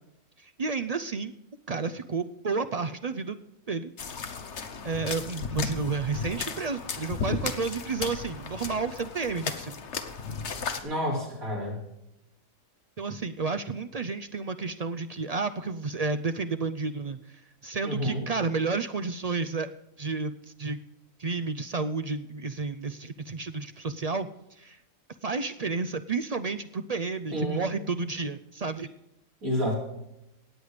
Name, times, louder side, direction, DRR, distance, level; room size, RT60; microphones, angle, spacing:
voice 1, 0.4-1.3 1.7-3.4 3.7-3.9 4.8-9.8 13.0-17.2 17.6-19.7 20.0-20.3 20.6-20.8 21.2-24.3 24.6-24.8 25.2-28.9, right 4 dB, 60° right, 8 dB, 0.4 m, -31 dB
sound 1, 4.0-10.8, left 5 dB, 55° left, 1.4 m, -35 dB
voice 2, 10.8-11.8 17.8-18.2 27.3-27.6 29.4-29.7, equal, 85° right, -3 dB, 5.1 m, -29 dB
18.0 x 8.2 x 5.1 m, 0.84 s
omnidirectional pair, 1.4 m